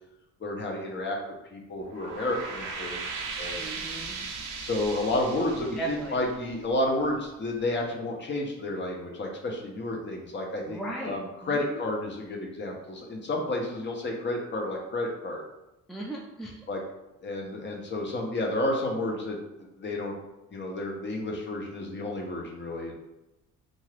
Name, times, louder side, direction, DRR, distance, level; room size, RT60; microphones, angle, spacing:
voice 1, 0.4-1.2 1.5-3.6 4.6-15.4 16.7-16.8 17.2-19.4 19.8-20.2 20.5-22.9, left 1 dB, 35° left, 0 dB, 0.7 m, -31 dB
sound 1, 1.8-7.0, right 4 dB, 75° right, 0.6 m, -38 dB
voice 2, 3.6-4.2 5.8-6.2 10.7-11.2 11.4-11.8 15.9-16.6, right 2 dB, ahead, -1 dB, 0.3 m, -37 dB
2.6 x 2.4 x 3.2 m, 0.95 s
cardioid pair, 80°, 31 cm